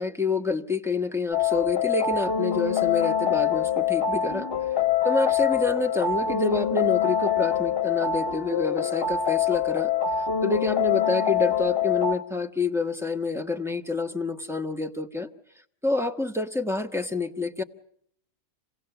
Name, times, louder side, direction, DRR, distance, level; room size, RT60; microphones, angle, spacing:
voice 1, 0.0-4.5 5.0-9.9 10.4-15.3 15.8-17.6, left 3 dB, ahead, 3 dB, 0.9 m, -28 dB
sound 1, 1.3-12.2, left 8 dB, 45° left, 1.2 m, -25 dB
27.0 x 17.5 x 6.9 m, 0.68 s
omnidirectional pair, 1.5 m